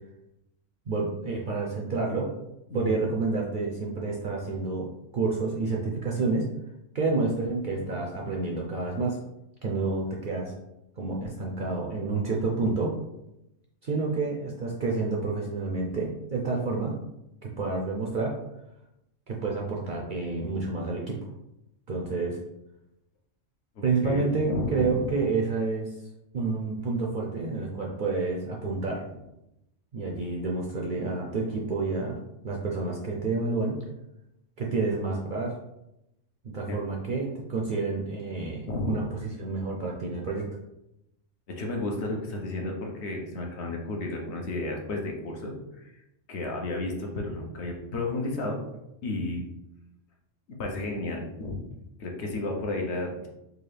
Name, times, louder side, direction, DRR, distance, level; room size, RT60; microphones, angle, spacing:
voice 1, 0.9-2.3 2.7-6.5 6.9-9.2 9.6-10.5 11.0-12.9 13.8-17.0 17.4-18.4 19.3-21.2 21.9-22.4 23.8-26.0 26.3-29.0 29.9-32.2 32.4-33.7 34.6-35.5 36.4-40.5, right 3 dB, 60° right, -1 dB, 0.5 m, -29 dB
voice 2, 2.7-3.1 7.6-7.9 23.8-25.1 36.7-36.8 38.7-38.9 41.5-46.0 46.3-48.6 49.0-49.4 50.6-51.6 52.0-53.3, left 2 dB, 65° left, 0 dB, 0.9 m, -32 dB
3.8 x 2.4 x 3.2 m, 0.87 s
omnidirectional pair, 1.3 m